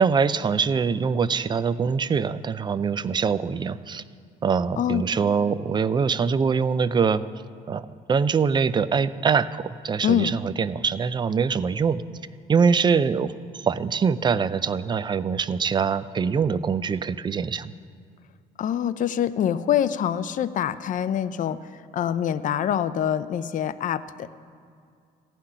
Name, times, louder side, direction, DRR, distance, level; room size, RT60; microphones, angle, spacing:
voice 1, 0.0-4.0 4.4-7.2 7.7-12.0 12.5-17.7, right 6 dB, 25° right, 15 dB, 0.4 m, -23 dB
voice 2, 18.6-21.6 21.9-24.3, left 9 dB, 50° left, 13 dB, 0.6 m, -25 dB
14.5 x 6.0 x 9.9 m, 2.3 s
cardioid pair, 110°, 17 cm